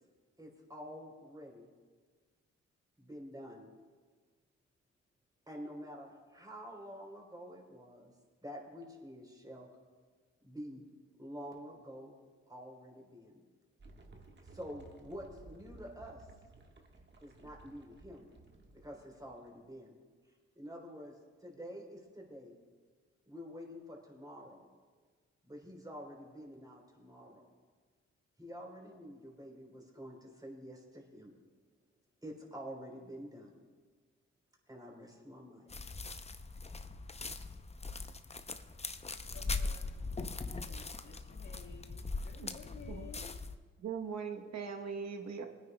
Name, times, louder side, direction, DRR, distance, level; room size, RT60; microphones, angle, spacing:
voice 1, 0.4-1.7 3.0-3.7 5.5-8.1 8.4-9.7 10.4-10.8 11.2-12.1 12.5-13.4 14.4-16.3 17.2-18.3 18.7-20.0 20.6-22.6 23.3-24.6 25.4-27.5 28.4-31.3 32.2-33.6 34.7-35.7, equal, 15° right, 3.6 m, -48 dB
sound 1, 13.8-19.5, right 2 dB, 40° right, 1.5 m, -57 dB
sound 2, 35.7-43.5, left 3 dB, 20° left, 0.6 m, -41 dB
voice 2, 39.3-40.0 40.6-43.4, left 5 dB, 70° left, 1.9 m, -54 dB
voice 3, 43.8-45.5, right 6 dB, 65° right, 1.1 m, -40 dB
25.0 x 9.4 x 2.3 m
cardioid pair, 55°, 29 cm